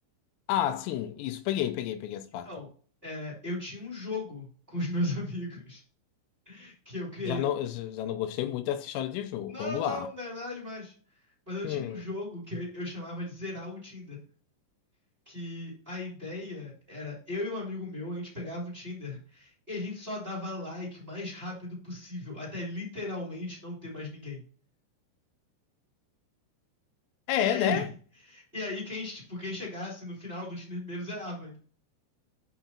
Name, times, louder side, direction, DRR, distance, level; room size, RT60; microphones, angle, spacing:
voice 1, 0.5-2.5 7.3-10.1 11.6-12.0 27.3-27.9, left 11 dB, 85° left, 3.3 m, -30 dB
voice 2, 3.0-5.8 6.4-7.4 9.5-10.9 11.5-14.2 15.3-24.4 27.3-27.9 28.3-31.6, left 1 dB, 15° right, 2.0 m, -36 dB
8.2 x 5.7 x 4.2 m
omnidirectional pair, 6.0 m